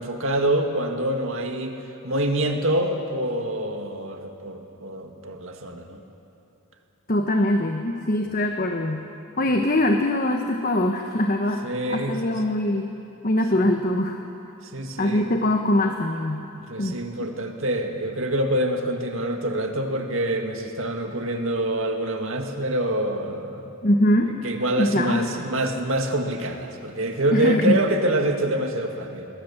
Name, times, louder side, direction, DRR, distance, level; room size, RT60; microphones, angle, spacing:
voice 1, 0.0-1.8 2.0-6.0 9.5-9.6 11.6-12.3 14.7-15.3 16.7-23.7 24.4-29.3, right 1 dB, 60° right, 4 dB, 2.1 m, -26 dB
voice 2, 7.1-9.1 9.4-12.9 13.2-14.2 15.0-16.5 16.8-17.0 23.8-24.3 24.8-25.3 27.3-27.8, left 1 dB, 40° left, 4 dB, 1.2 m, -22 dB
27.0 x 21.0 x 7.3 m, 2.9 s
head